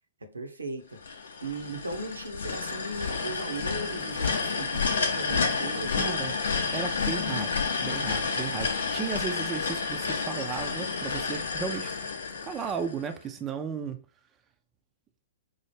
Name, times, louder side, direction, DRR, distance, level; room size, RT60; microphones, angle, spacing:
voice 1, 0.3-1.0 1.4-6.3, right 2 dB, 80° right, 0.7 m, -37 dB
sound 1, 1.0-13.1, left 5 dB, 65° left, 0.6 m, -30 dB
voice 2, 6.0-6.3 6.7-7.6 7.8-11.9 12.4-14.0, right 6 dB, 20° right, 0.4 m, -34 dB
4.7 x 2.0 x 3.1 m
figure-of-eight pair, 110°, 0 cm